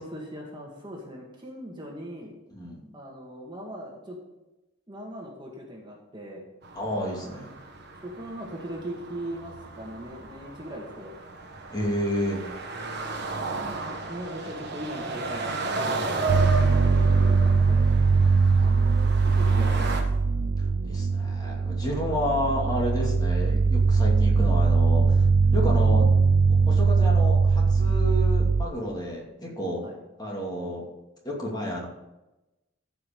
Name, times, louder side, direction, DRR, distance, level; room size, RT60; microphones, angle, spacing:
voice 1, 0.0-2.3 2.9-4.2 4.9-6.5 7.2-7.3 8.0-11.1 13.7-17.9 18.5-20.0 29.8-30.0, right 1 dB, 25° right, -1 dB, 1.9 m, -40 dB
voice 2, 2.5-2.9 6.7-7.5 11.7-12.4 16.1-16.9 20.8-26.0 26.5-29.8 30.2-30.8 31.2-31.9, equal, 20° left, -2 dB, 2.6 m, -31 dB
sound 1, 6.6-20.0, right 3 dB, 60° right, 1.6 m, -34 dB
sound 2, 16.3-28.7, right 4 dB, 75° right, 0.6 m, -21 dB
14.0 x 5.7 x 5.4 m, 0.99 s
head